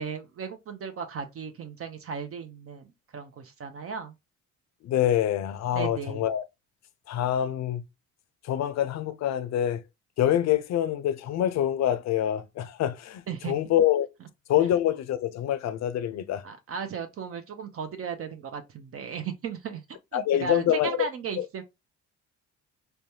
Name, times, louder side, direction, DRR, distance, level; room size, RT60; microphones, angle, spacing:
voice 1, 0.0-2.8 3.1-4.1 5.7-6.2 13.3-13.5 16.4-19.8 20.1-21.6, right 6 dB, 50° right, 0.5 m, -36 dB
voice 2, 4.8-6.5 7.1-7.8 8.4-9.8 10.2-14.1 14.5-16.4 20.1-21.1 21.4-21.5, left 11 dB, 65° left, 0.5 m, -26 dB
3.2 x 2.2 x 2.7 m
cardioid pair, 90°, 30 cm